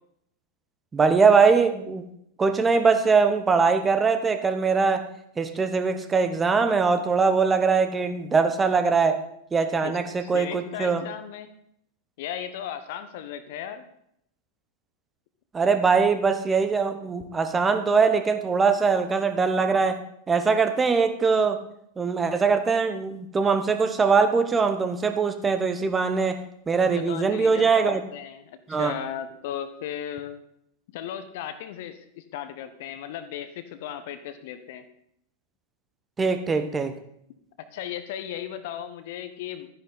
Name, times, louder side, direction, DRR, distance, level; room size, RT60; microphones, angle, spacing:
voice 1, 0.9-2.0 2.4-5.1 5.4-9.2 9.5-11.0 15.5-20.0 20.3-21.6 22.0-26.4 26.7-28.0 28.7-29.0 36.2-37.0, right 5 dB, 15° right, 9 dB, 1.0 m, -22 dB
voice 2, 10.2-11.5 12.2-13.8 27.0-30.4 30.9-34.8 37.7-39.7, left 10 dB, 50° left, 11 dB, 1.0 m, -36 dB
12.5 x 10.0 x 4.1 m, 0.72 s
figure-of-eight pair, 90°, 0 cm